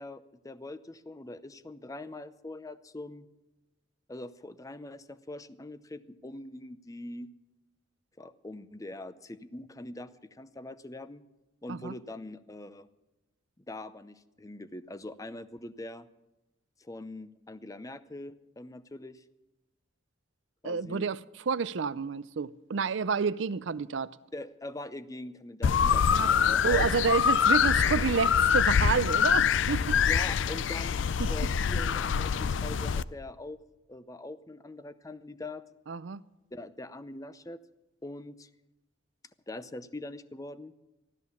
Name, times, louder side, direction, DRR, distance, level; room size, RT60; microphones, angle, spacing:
voice 1, 0.0-3.3 4.1-7.3 8.2-11.2 11.6-12.9 13.6-16.1 16.8-19.2 20.6-21.1 24.3-26.9 30.1-31.0 31.3-33.6 33.9-35.6 36.5-37.6 38.0-38.5 39.5-40.7, left 2 dB, 15° left, 0.6 m, -42 dB
voice 2, 20.6-21.2 21.5-24.2 26.0-26.3 26.6-30.0 31.2-31.3 35.9-36.2, right 5 dB, 70° right, 0.5 m, -29 dB
sound 1, 25.6-33.0, left 7 dB, 70° left, 0.4 m, -25 dB
15.0 x 12.5 x 7.0 m
head